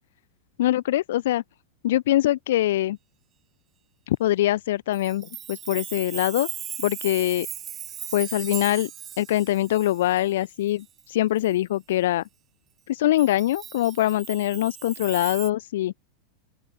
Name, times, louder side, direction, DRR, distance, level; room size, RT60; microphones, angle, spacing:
voice 1, 0.6-1.4 1.8-3.0 4.1-6.5 6.8-7.5 8.1-8.9 9.2-12.2 12.9-15.9, left 14 dB, 55° left, 3.7 m, -23 dB
Chime, 4.9-11.0 11.4-11.5 13.2-15.5, right 9 dB, 25° right, 5.4 m, -38 dB
open air
figure-of-eight pair, 90°, 0 cm